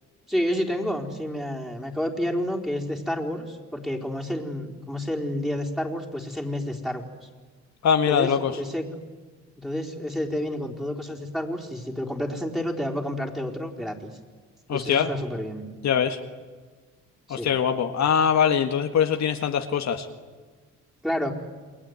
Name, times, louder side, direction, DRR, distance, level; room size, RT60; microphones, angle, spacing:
voice 1, 0.3-7.0 8.1-8.3 8.6-8.9 9.6-14.1 14.7-15.6 17.3-17.5 21.0-21.3, left 1 dB, ahead, 0 dB, 4.4 m, -29 dB
voice 2, 7.8-8.6 14.7-15.1 15.8-16.2 17.3-20.1, left 7 dB, 65° left, 6 dB, 1.8 m, -22 dB
29.0 x 21.0 x 9.7 m, 1.5 s
cardioid pair, 90°, 30 cm